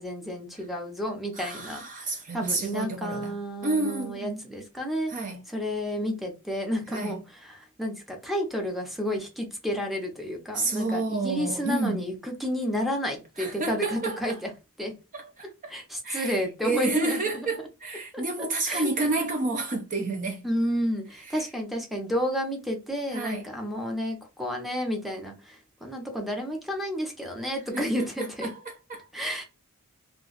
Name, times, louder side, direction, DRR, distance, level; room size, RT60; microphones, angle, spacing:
voice 1, 0.0-1.8 2.3-5.1 5.5-14.5 14.8-14.9 15.7-17.5 18.1-18.2 18.6-19.1 20.4-28.5 29.1-29.4, equal, ahead, 0.7 m, -31 dB
voice 2, 1.3-3.3 3.6-4.5 5.1-5.4 6.9-7.2 10.5-12.1 13.4-14.4 15.1-15.5 16.0-20.4 21.3-21.5 23.1-23.5 27.7-27.9 28.2-29.1, right 2 dB, 35° right, 0.5 m, -30 dB
2.4 x 2.3 x 3.8 m
head